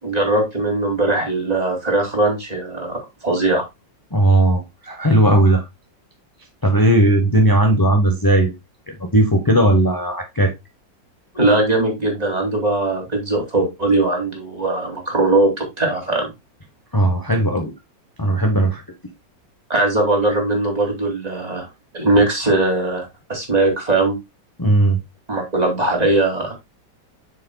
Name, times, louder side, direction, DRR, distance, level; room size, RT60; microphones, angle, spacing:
voice 1, 0.0-3.7 11.3-16.3 19.7-21.7 21.9-24.1 25.3-26.6, right 2 dB, 20° right, 0 dB, 2.6 m, -20 dB
voice 2, 4.1-5.6 6.6-8.5 8.9-10.5 16.9-17.7 18.2-18.8 24.6-25.0, right 1 dB, 20° left, 3 dB, 0.5 m, -16 dB
7.5 x 6.5 x 2.2 m, 0.21 s
omnidirectional pair, 2.0 m